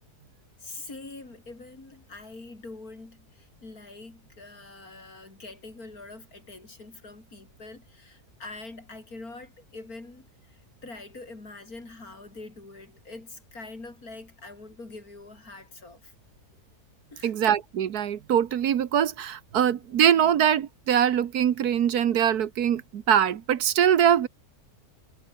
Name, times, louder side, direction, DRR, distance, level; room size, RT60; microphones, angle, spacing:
voice 1, 0.6-16.1 17.1-17.3, left 3 dB, 65° left, 5.0 m, -44 dB
voice 2, 17.2-24.3, right 9 dB, 70° right, 1.5 m, -23 dB
omnidirectional pair, 1.7 m